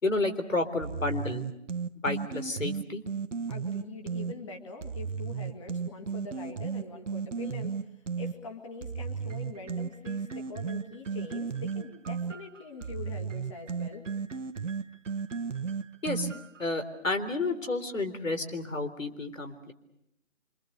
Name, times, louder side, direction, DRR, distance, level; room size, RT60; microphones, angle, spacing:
voice 1, 0.0-1.5 2.0-3.0 16.0-16.3 16.6-19.7, left 2 dB, 85° left, 8 dB, 3.9 m, -31 dB
sound 1, 0.8-4.3 4.8-8.3 8.8-16.6, right 6 dB, 70° right, 1.0 m, -34 dB
voice 2, 3.5-14.0, left 4 dB, 25° left, 3 dB, 2.0 m, -44 dB
27.0 x 26.0 x 6.8 m, 0.81 s
figure-of-eight pair, 170°, 38 cm